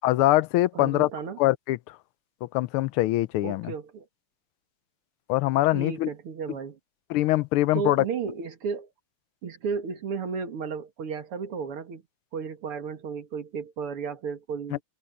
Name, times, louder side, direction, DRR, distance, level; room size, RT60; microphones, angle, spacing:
voice 1, 0.0-1.1 1.4-1.8 2.4-3.7 5.3-6.1 7.1-8.0 14.7-14.8, left 16 dB, 80° left, 1.5 m, -23 dB
voice 2, 0.7-1.4 3.4-4.1 5.7-6.8 7.7-8.9 9.4-12.0 12.3-14.8, right 6 dB, 80° right, 2.8 m, -33 dB
omnidirectional pair, 2.4 m